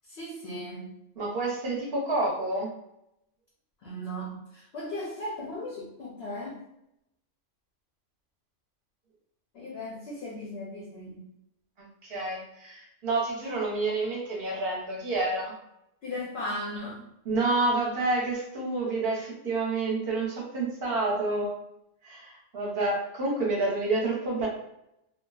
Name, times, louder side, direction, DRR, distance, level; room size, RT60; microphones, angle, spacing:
voice 1, 0.1-0.9 3.8-6.6 9.5-11.2 16.0-17.0 21.1-21.2, left 1 dB, 60° left, -3 dB, 0.7 m, -37 dB
voice 2, 1.2-2.7 11.8-15.5 17.2-21.5 22.0-24.5, right 2 dB, 55° right, -3 dB, 0.8 m, -29 dB
2.6 x 2.1 x 2.3 m, 0.82 s
omnidirectional pair, 1.4 m